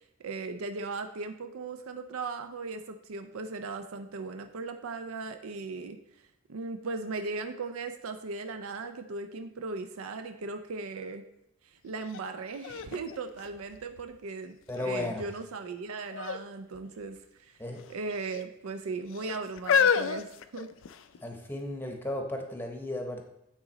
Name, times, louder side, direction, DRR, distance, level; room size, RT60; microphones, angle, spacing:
voice 1, 0.2-6.0 6.5-11.3 11.6-17.6 17.9-20.7, right 3 dB, 90° right, 7 dB, 0.5 m, -38 dB
sound 1, 12.1-12.2 12.6-14.2 14.8-15.3 16.1-16.5 16.7-16.9 17.8-18.4 19.1-21.2 21.9-22.0, left 7 dB, 65° left, 0.3 m, -29 dB
voice 2, 14.7-15.2 17.6-17.9 21.2-23.2, left 1 dB, 10° left, 3 dB, 0.8 m, -34 dB
8.9 x 3.9 x 4.0 m, 0.81 s
head